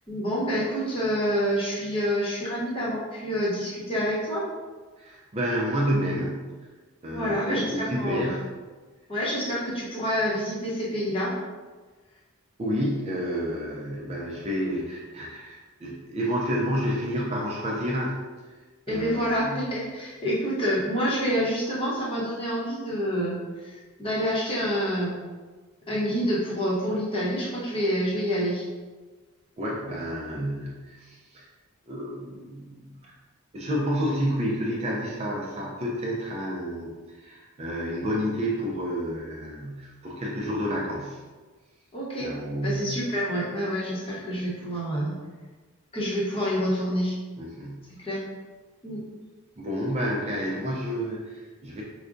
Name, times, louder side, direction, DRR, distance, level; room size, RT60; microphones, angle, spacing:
voice 1, 0.1-4.5 7.1-8.3 9.1-11.4 18.9-25.2 25.9-28.7 41.9-42.3 42.6-45.1 45.9-47.2 48.0-48.2 48.8-49.0, equal, 25° left, -6 dB, 0.8 m, -27 dB
voice 2, 5.0-6.4 7.0-8.5 12.6-18.2 18.4-18.5 18.9-19.7 29.6-31.5 31.9-33.2 33.5-41.2 42.2-43.0 47.4-47.9 49.6-51.8, equal, 30° right, -3 dB, 0.4 m, -30 dB
4.7 x 2.2 x 2.5 m, 1.3 s
head